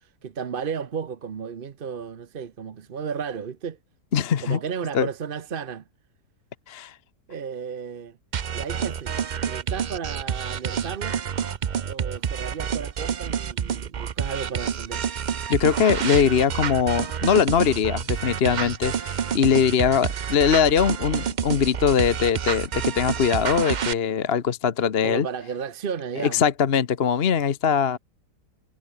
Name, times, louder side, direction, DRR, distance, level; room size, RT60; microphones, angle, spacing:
voice 1, 0.0-3.8 4.4-5.8 7.3-8.2 8.5-9.2 9.5-11.2 11.9-15.0 25.0-26.4, right 6 dB, 40° right, 0.8 m, -33 dB
voice 2, 4.1-4.6 4.9-5.1 6.7-6.9 15.5-25.3 26.2-28.0, left 7 dB, 45° left, 1.0 m, -21 dB
sound 1, 8.3-23.9, right 7 dB, 70° right, 0.4 m, -28 dB
omnidirectional pair, 1.8 m